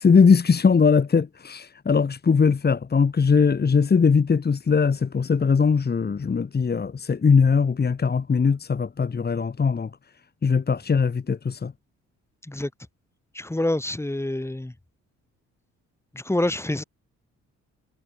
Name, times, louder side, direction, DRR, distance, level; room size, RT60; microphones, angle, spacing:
voice 1, 0.0-9.9 10.4-11.7, left 5 dB, 35° left, 2.2 m, -20 dB
voice 2, 13.3-14.7 16.1-16.8, left 1 dB, 10° left, 3.4 m, -26 dB
cardioid pair, 90°, 30 cm